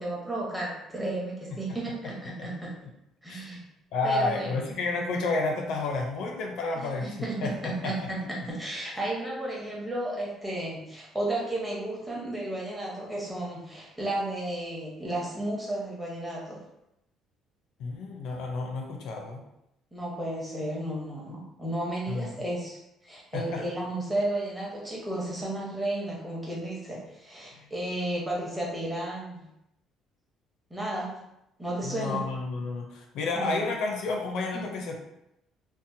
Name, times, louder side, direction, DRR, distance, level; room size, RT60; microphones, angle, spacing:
voice 1, 0.0-2.7 3.2-3.6 4.0-4.6 6.7-8.2 8.5-16.6 19.9-22.8 23.0-29.4 30.7-31.2 31.6-32.2 33.3-33.7 34.5-34.7, right 1 dB, 5° right, -4 dB, 0.8 m, -33 dB
voice 2, 3.9-8.1 17.8-19.4 22.1-22.4 23.3-23.7 27.5-27.7 31.8-34.9, left 3 dB, 75° left, 1 dB, 0.5 m, -31 dB
2.7 x 2.0 x 2.6 m, 0.84 s
cardioid pair, 120°, 0 cm